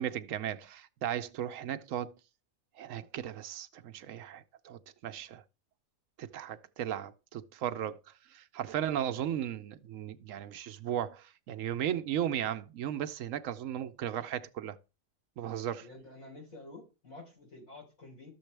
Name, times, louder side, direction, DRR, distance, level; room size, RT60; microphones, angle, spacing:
voice 1, 0.0-2.1 2.8-5.4 6.2-8.0 8.3-14.8 15.4-15.9, right 10 dB, 75° right, 1.0 m, -36 dB
voice 2, 15.8-18.3, left 2 dB, 85° left, 4.5 m, -50 dB
13.0 x 7.0 x 3.3 m
omnidirectional pair, 1.4 m